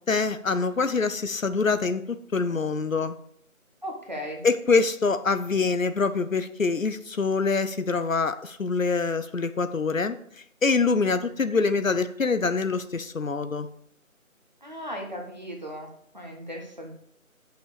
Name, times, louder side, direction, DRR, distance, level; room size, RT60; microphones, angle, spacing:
voice 1, 0.1-3.2 4.4-10.2 10.6-13.7, left 4 dB, 65° left, 12 dB, 0.7 m, -25 dB
voice 2, 3.8-4.5 14.6-16.9, equal, 30° right, 0 dB, 1.4 m, -37 dB
7.5 x 6.1 x 4.8 m, 0.67 s
figure-of-eight pair, 175°, 42 cm